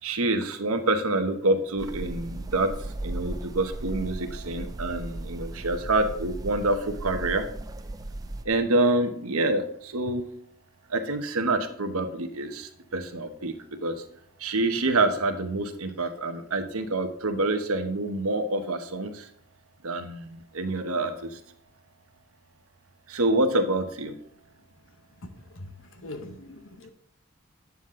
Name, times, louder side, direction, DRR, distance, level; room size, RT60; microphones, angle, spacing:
voice 1, 0.0-2.7 3.0-7.5 8.4-10.2 10.9-13.5 13.8-14.0 14.4-19.3 19.8-21.4 23.1-24.2, right 2 dB, 90° right, 7 dB, 1.1 m, -27 dB
sound 1, 1.8-8.4, right 2 dB, 15° right, 0.4 m, -36 dB
voice 2, 26.0-26.9, left 2 dB, 65° left, 7 dB, 0.9 m, -41 dB
9.4 x 7.2 x 3.8 m, 0.63 s
head